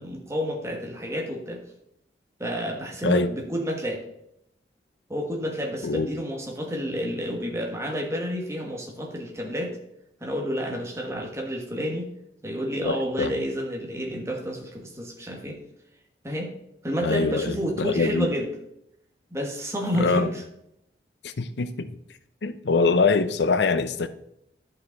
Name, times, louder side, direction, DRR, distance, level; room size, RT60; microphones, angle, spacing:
voice 1, 0.0-1.6 2.4-4.0 5.1-9.8 10.2-12.1 12.4-15.6 16.2-16.5 16.8-18.5 19.3-20.4, equal, 15° right, 1.5 m, -30 dB
voice 2, 12.8-13.3 17.0-18.3 19.9-20.3 21.2-21.9 22.4-24.1, left 4 dB, 80° left, 0.6 m, -24 dB
11.5 x 5.5 x 4.0 m
head